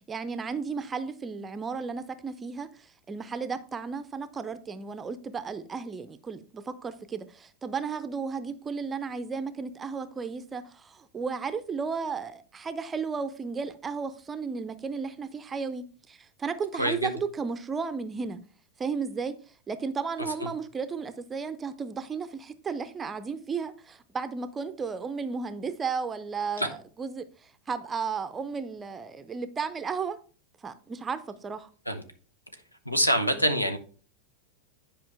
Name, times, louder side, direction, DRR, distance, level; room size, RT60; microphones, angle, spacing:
voice 1, 0.1-18.4 18.8-19.4 19.7-30.2 30.6-31.7, right 5 dB, 20° right, 0.6 m, -34 dB
voice 2, 16.8-17.2 20.4-20.5 26.6-26.7 31.9-32.0 32.8-33.8, equal, 85° left, 1.0 m, -25 dB
10.5 x 5.0 x 3.3 m
figure-of-eight pair, 90°, 0 cm